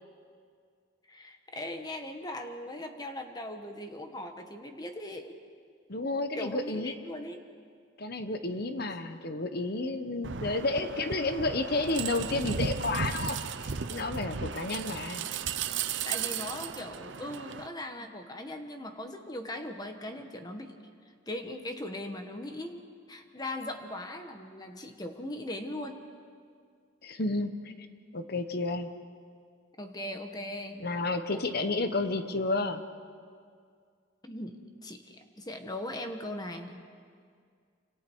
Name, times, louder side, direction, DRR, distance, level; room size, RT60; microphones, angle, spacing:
voice 1, 1.1-5.4 6.4-7.4 14.7-15.1 16.0-20.8 21.3-26.0 29.8-30.8 31.3-31.4 31.8-31.9 32.3-32.4 34.2-36.8, left 1 dB, 20° left, 5 dB, 1.4 m, -39 dB
voice 2, 5.9-6.9 8.0-15.3 27.0-27.7 28.1-28.9 30.8-32.8, left 2 dB, 50° left, 9 dB, 1.1 m, -31 dB
sound 1, 10.2-17.7, right 6 dB, 65° right, 0.8 m, -35 dB
28.0 x 26.0 x 4.7 m, 2.1 s
head